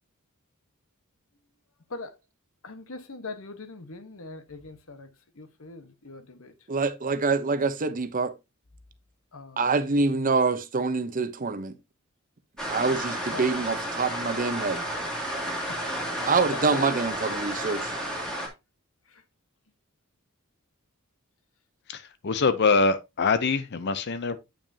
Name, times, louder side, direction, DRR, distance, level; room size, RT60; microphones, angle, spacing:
voice 1, 2.6-5.1 5.3-6.5 9.3-9.6 13.3-13.6 15.7-16.9 19.1-19.2, left 3 dB, 65° left, 1.2 m, -41 dB
voice 2, 6.7-8.3 9.6-11.8 12.7-14.9 16.3-17.9, right 4 dB, 40° right, 0.8 m, -26 dB
sound 1, 12.6-18.5, equal, 5° left, 2.2 m, -32 dB
voice 3, 21.9-24.4, left 4 dB, 50° left, 0.6 m, -24 dB
8.8 x 5.9 x 2.7 m
head